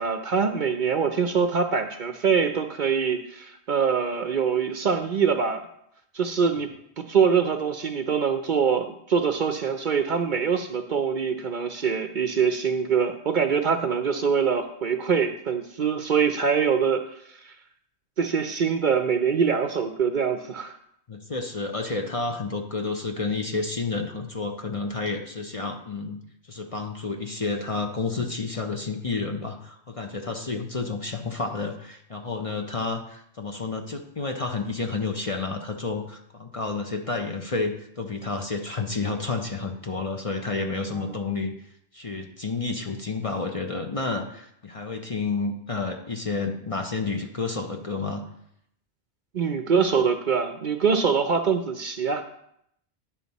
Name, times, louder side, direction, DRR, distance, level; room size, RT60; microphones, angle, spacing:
voice 1, 0.0-5.6 6.1-6.7 7.0-17.0 17.4-17.5 18.2-20.7 40.9-41.1 49.3-52.2, right 6 dB, 55° right, 7 dB, 0.7 m, -24 dB
voice 2, 21.1-26.2 26.5-41.5 41.9-48.2, left 3 dB, 35° left, 3 dB, 0.7 m, -30 dB
10.5 x 5.7 x 4.1 m, 0.74 s
omnidirectional pair, 1.1 m